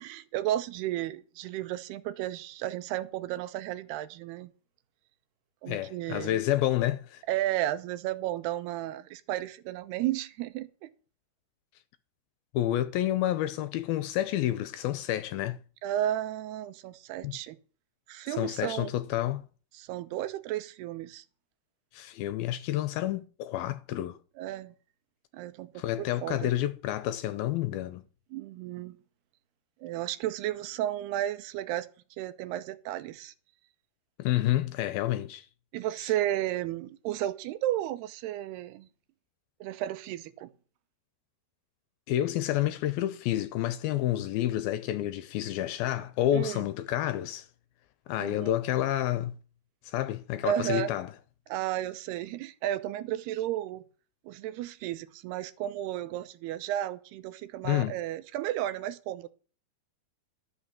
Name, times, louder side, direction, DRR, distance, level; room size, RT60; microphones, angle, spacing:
voice 1, 0.0-4.5 5.6-6.4 7.3-10.9 15.8-17.6 18.1-18.9 19.7-21.2 24.4-24.7 25.3-26.5 28.3-29.0 29.8-31.9 32.2-33.3 35.7-38.9 39.6-40.5 46.3-46.7 48.2-48.5 50.4-50.9 51.5-53.8 54.2-59.3, right 13 dB, 85° right, 2.9 m, -33 dB
voice 2, 5.7-7.2 12.5-15.6 17.2-17.4 18.4-19.5 21.9-24.2 25.8-28.0 34.2-35.5 42.1-47.5 48.1-49.3 49.8-51.1 57.6-57.9, left 13 dB, 80° left, 2.4 m, -29 dB
13.0 x 6.3 x 7.4 m
omnidirectional pair, 4.6 m